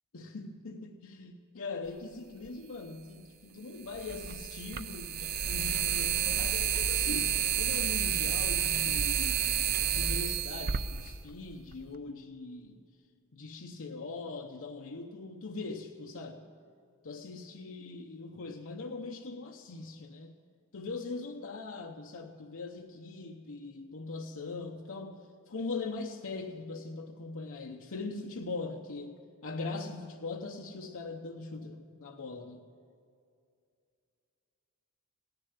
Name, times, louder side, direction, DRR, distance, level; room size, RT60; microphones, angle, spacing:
voice 1, 0.1-9.4 9.8-12.8 13.3-16.5 17.0-20.4 20.7-25.2 25.5-32.6, left 3 dB, 65° left, 1 dB, 0.8 m, -41 dB
sound 1, 2.5-2.6 3.9-11.8, right 9 dB, 45° right, 0.5 m, -30 dB
17.0 x 7.0 x 9.5 m, 2.4 s
head